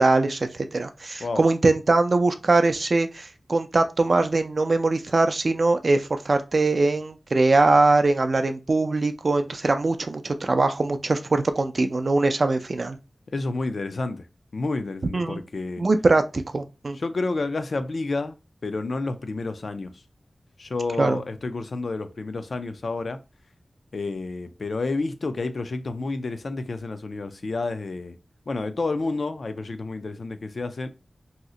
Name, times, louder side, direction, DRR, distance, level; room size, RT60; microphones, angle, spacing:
voice 1, 0.0-13.0 15.1-15.4 15.8-17.0 21.0-21.2, right 3 dB, 55° right, 0.4 m, -22 dB
voice 2, 13.3-14.3 14.5-15.8 17.0-18.4 18.6-20.0 20.6-23.2 23.9-28.2 28.5-30.9, left 3 dB, 70° left, 0.4 m, -30 dB
2.7 x 2.1 x 3.6 m
wide cardioid pair, 80°, 0 cm